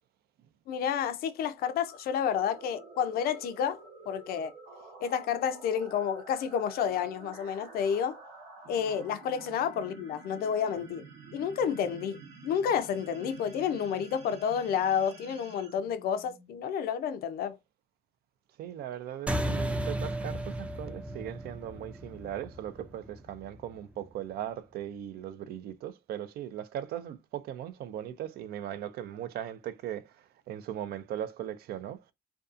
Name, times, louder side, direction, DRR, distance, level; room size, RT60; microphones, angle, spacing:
voice 1, 0.7-3.8 4.1-4.5 5.0-8.2 8.7-11.0 11.3-17.6, left 8 dB, 65° left, 0.4 m, -30 dB
sound 1, 1.6-16.7, right 4 dB, 90° right, 1.0 m, -50 dB
voice 2, 18.6-32.1, right 11 dB, 70° right, 0.4 m, -39 dB
sound 2, 19.3-24.1, right 1 dB, 5° right, 0.4 m, -35 dB
2.6 x 2.3 x 2.4 m
cardioid pair, 110°, 17 cm